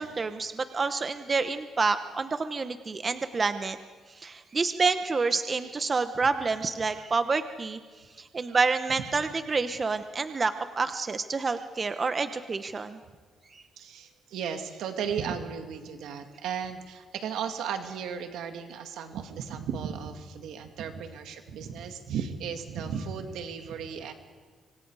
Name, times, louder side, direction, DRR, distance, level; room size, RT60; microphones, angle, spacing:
voice 1, 0.0-3.8 4.2-7.8 8.2-13.0 13.5-13.6, right 4 dB, 35° right, 9 dB, 1.0 m, -28 dB
voice 2, 13.8-24.1, right 7 dB, 85° right, 5 dB, 2.3 m, -35 dB
26.0 x 25.0 x 4.9 m, 1.5 s
cardioid pair, 90°, 0 cm